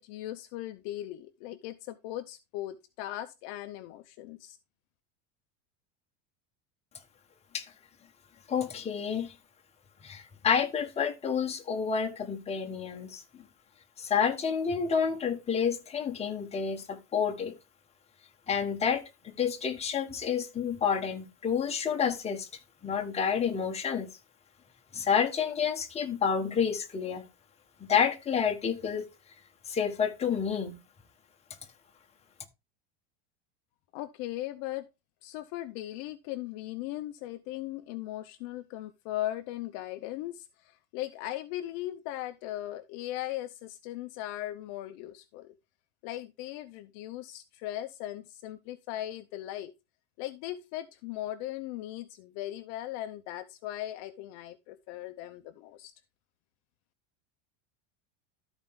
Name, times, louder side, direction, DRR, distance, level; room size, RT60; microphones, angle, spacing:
voice 1, 0.0-4.6 33.9-34.9 35.2-45.5 46.0-49.7 50.2-55.9, left 14 dB, 50° left, 0.7 m, -38 dB
voice 2, 8.5-9.3 10.0-13.2 14.0-17.5 18.5-22.5 22.8-24.1 24.9-27.2 27.9-29.1 29.7-30.8, left 7 dB, 20° left, 1.3 m, -29 dB
13.0 x 4.5 x 3.6 m
supercardioid pair, 145°, 35 cm